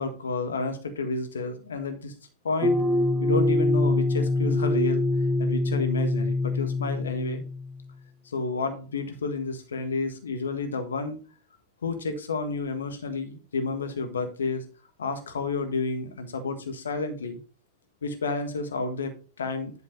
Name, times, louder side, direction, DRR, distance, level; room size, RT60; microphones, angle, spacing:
voice 1, 0.0-2.1 2.4-2.8 3.2-5.1 5.4-7.4 8.2-11.2 11.8-14.6 15.0-17.4 18.0-19.7, left 3 dB, 70° left, 7 dB, 1.5 m, -30 dB
sound 1, 2.6-7.8, left 2 dB, 15° right, 1.1 m, -24 dB
11.0 x 3.8 x 5.2 m, 0.37 s
figure-of-eight pair, 90°, 0 cm